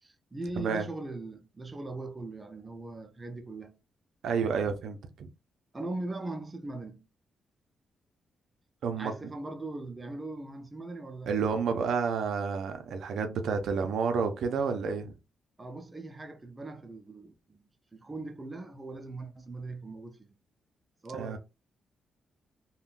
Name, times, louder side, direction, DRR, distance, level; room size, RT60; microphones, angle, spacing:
voice 1, 0.0-3.8 5.7-7.0 9.0-11.4 15.6-17.6 17.9-20.3 21.0-21.4, right 2 dB, 20° right, 0.5 m, -40 dB
voice 2, 0.6-0.9 4.2-5.3 8.8-9.1 11.3-15.1 21.1-21.4, right 5 dB, 80° right, 0.5 m, -30 dB
3.6 x 2.2 x 2.4 m
cardioid pair, 110°, 0 cm